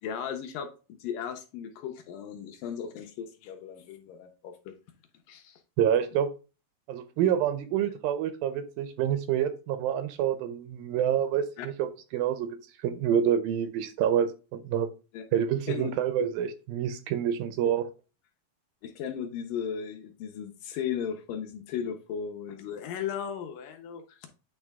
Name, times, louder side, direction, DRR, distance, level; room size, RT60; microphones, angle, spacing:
voice 1, 0.0-0.7 1.0-4.7 5.3-5.6 11.6-11.7 15.1-15.4 15.7-16.3 18.8-24.3, left 8 dB, 75° left, 4 dB, 2.1 m, -36 dB
voice 2, 5.8-6.3 6.9-12.6 12.8-14.9 15.3-17.9, right 9 dB, 80° right, 11 dB, 2.2 m, -27 dB
8.8 x 3.4 x 3.5 m, 0.32 s
omnidirectional pair, 4.3 m